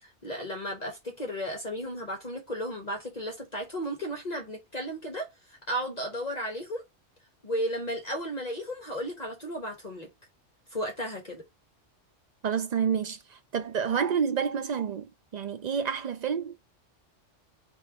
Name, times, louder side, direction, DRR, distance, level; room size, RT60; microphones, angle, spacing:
voice 1, 0.0-6.8 7.4-10.1 10.7-11.4, equal, 35° left, 1.1 m, -34 dB
voice 2, 12.4-16.6, right 7 dB, 65° right, 0.4 m, -29 dB
3.4 x 3.0 x 4.8 m
omnidirectional pair, 1.3 m